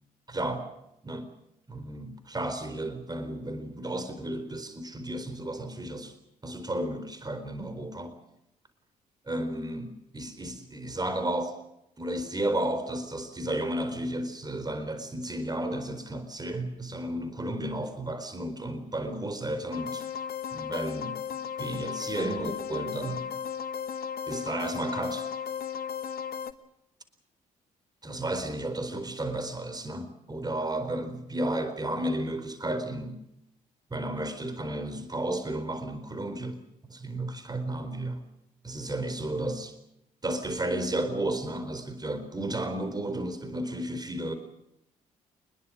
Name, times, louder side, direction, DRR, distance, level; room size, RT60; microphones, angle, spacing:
voice 1, 0.3-0.7 1.0-1.3 1.7-6.1 6.4-8.2 9.3-11.6 12.0-20.1 20.5-21.2 21.6-23.3 24.3-25.3 28.0-33.2 33.9-36.6 36.9-38.3 38.6-39.7 40.2-44.3, right 1 dB, 20° right, 10 dB, 4.3 m, -33 dB
sound 1, 19.7-26.5, left 7 dB, 55° left, 1.7 m, -35 dB
25.5 x 21.0 x 6.4 m, 0.82 s
hypercardioid pair, 45°, 19 cm